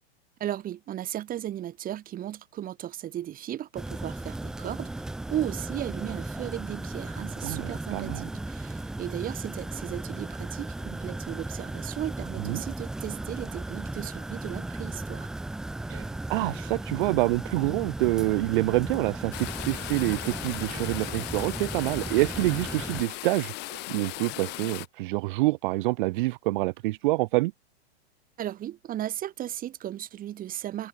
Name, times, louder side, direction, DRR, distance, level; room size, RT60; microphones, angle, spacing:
voice 1, 0.4-5.0 5.3-15.3 28.4-30.9, right 12 dB, 25° right, 5.5 m, -35 dB
sound 1, 3.8-23.0, right 2 dB, ahead, 0.3 m, -36 dB
voice 2, 7.9-8.2 12.4-12.6 15.9-27.5, right 21 dB, 50° right, 1.9 m, -27 dB
sound 2, 19.3-24.9, left 22 dB, 30° left, 1.1 m, -37 dB
hypercardioid pair, 135°, 32 cm